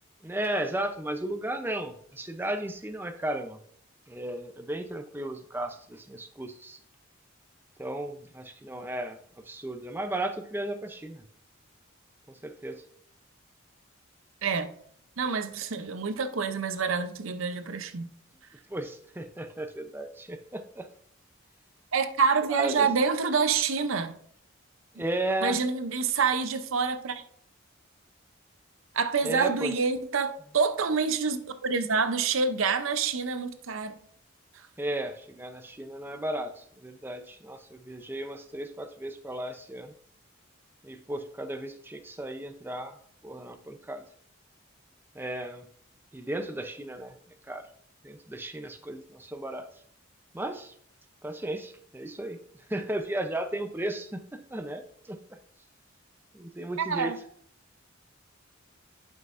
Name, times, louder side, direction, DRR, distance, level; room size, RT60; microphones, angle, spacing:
voice 1, 0.2-3.6 4.1-6.8 7.8-9.2 9.4-11.2 12.3-12.8 18.7-20.9 22.5-22.9 25.0-25.6 29.2-29.8 34.8-39.9 40.8-43.0 43.2-44.0 45.1-45.7 46.1-47.2 47.5-47.6 48.0-49.7 50.3-50.7 51.2-52.4 52.7-55.2 56.3-57.1, right 1 dB, 10° right, 7 dB, 0.5 m, -34 dB
voice 2, 14.4-14.7 15.2-18.1 21.9-24.1 25.4-27.2 28.9-34.0 56.9-57.2, right 5 dB, 70° right, 9 dB, 0.6 m, -27 dB
11.0 x 5.5 x 2.5 m, 0.63 s
head